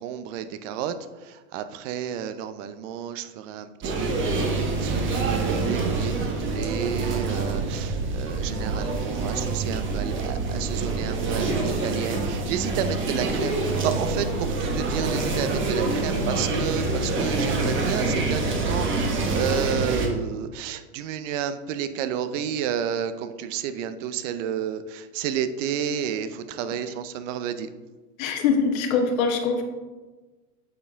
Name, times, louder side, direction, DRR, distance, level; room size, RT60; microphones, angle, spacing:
voice 1, 0.0-27.7, right 9 dB, 55° right, 11 dB, 0.6 m, -31 dB
sound 1, 3.8-20.1, right 3 dB, 25° right, 1.2 m, -26 dB
voice 2, 28.2-29.6, left 5 dB, 60° left, 4 dB, 1.0 m, -23 dB
8.3 x 4.4 x 3.5 m, 1.3 s
hypercardioid pair, 115°, 45 cm